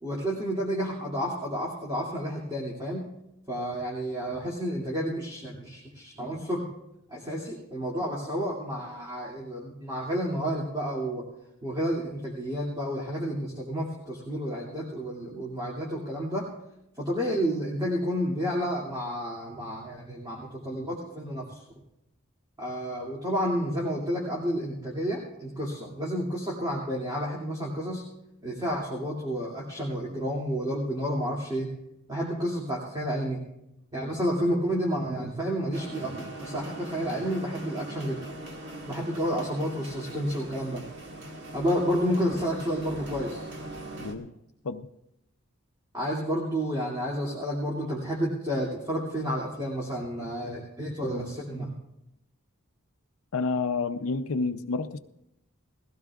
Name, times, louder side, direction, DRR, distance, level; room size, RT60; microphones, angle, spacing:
voice 1, 0.0-3.1 3.5-6.7 7.1-11.3 11.6-16.5 17.0-21.6 22.6-28.1 28.4-31.7 32.1-33.4 33.9-38.2 38.8-40.8 41.5-43.4 45.9-51.7, equal, 20° right, -4 dB, 2.4 m, -30 dB
sound 1, 35.7-44.1, right 1 dB, 55° right, 1.8 m, -41 dB
voice 2, 44.0-44.3 44.6-44.9 53.3-55.0, left 4 dB, 75° left, 6 dB, 0.6 m, -29 dB
20.0 x 16.0 x 2.4 m, 0.84 s
head